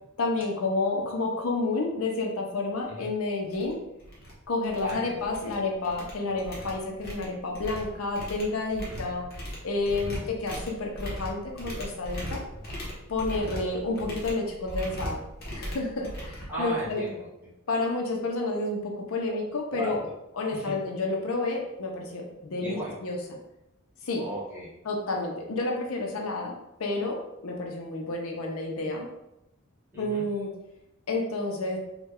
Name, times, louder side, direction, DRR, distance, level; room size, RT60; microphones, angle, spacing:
voice 1, 0.2-3.8 4.5-9.3 9.6-12.4 13.1-15.2 15.5-17.0 17.7-20.0 20.4-23.2 24.0-24.2 24.8-29.1 30.0-30.5 31.1-31.8, left 2 dB, 80° left, 1 dB, 0.6 m, -30 dB
sound 1, 3.0-3.1 3.5-3.7 4.0-4.3 4.6-5.6 5.8-17.1, equal, 45° left, 0.9 m, -38 dB
voice 2, 4.8-5.4 8.9-9.1 10.0-10.2 12.5-12.6 16.5-17.5 19.7-20.1 20.5-20.7 22.6-23.0 24.2-24.7 29.9-30.2, equal, 10° right, -9 dB, 1.2 m, -36 dB
3.1 x 2.2 x 3.5 m, 0.89 s
head